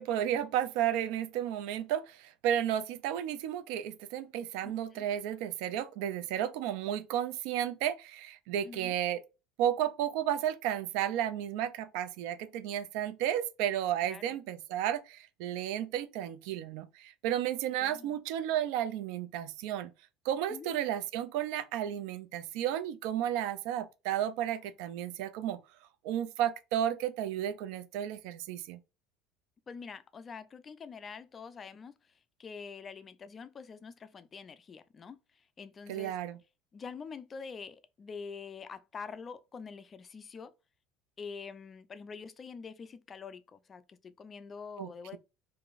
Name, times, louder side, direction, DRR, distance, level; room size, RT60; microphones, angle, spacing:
voice 1, 0.0-9.2 9.6-19.9 20.3-25.6 26.0-28.8 35.9-36.4 44.8-45.2, right 11 dB, 75° right, 0.3 m, -33 dB
voice 2, 4.6-5.1 8.6-9.0 14.0-14.4 17.8-18.2 20.5-20.7 29.7-31.9 32.4-36.2 36.7-40.5 41.2-45.2, left 5 dB, 30° left, 0.3 m, -46 dB
2.9 x 2.5 x 2.3 m
supercardioid pair, 105°, 0 cm